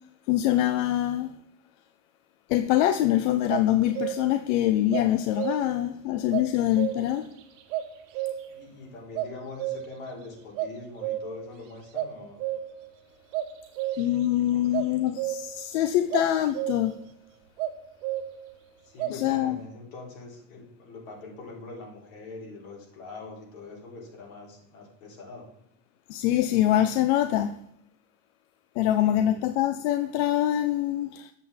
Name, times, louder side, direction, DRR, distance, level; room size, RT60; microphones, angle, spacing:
voice 1, 0.3-1.3 2.5-7.3 14.0-17.0 19.1-19.6 26.1-27.5 28.8-31.3, left 12 dB, 65° left, 0.6 m, -24 dB
sound 1, 2.8-3.1 3.5-4.4 4.9-5.9 6.3-7.3 7.7-8.6 9.1-10.1 10.6-11.5 11.9-12.9 13.3-14.3 14.7-15.7 16.1-17.0 17.6-18.5 19.0-19.2, right 13 dB, 70° right, 1.1 m, -32 dB
voice 2, 8.5-12.4 14.5-14.9 18.8-25.5 28.8-29.5, left 3 dB, 85° left, 3.6 m, -43 dB
8.5 x 7.7 x 3.5 m
supercardioid pair, 160°, 39 cm